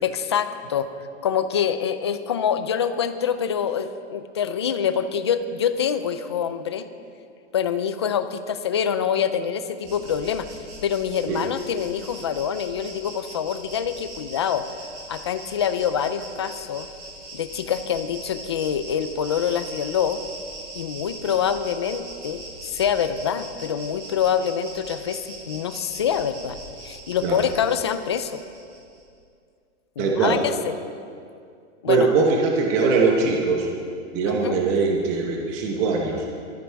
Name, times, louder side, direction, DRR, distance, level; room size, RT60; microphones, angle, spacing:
voice 1, 0.0-0.9 1.2-6.8 7.5-10.5 10.8-14.6 15.1-16.9 17.3-20.2 20.8-22.4 22.7-26.6 26.8-28.4 30.0-30.7 31.8-32.1 34.2-34.6, left 8 dB, 25° left, 10 dB, 0.3 m, -25 dB
Insect, 9.8-29.0, right 2 dB, 40° right, 5.1 m, -41 dB
voice 2, 30.0-30.4 31.9-33.7 34.1-36.2, right 4 dB, 20° right, 0 dB, 1.0 m, -21 dB
21.0 x 13.5 x 4.6 m, 2.3 s
supercardioid pair, 180°, 35 cm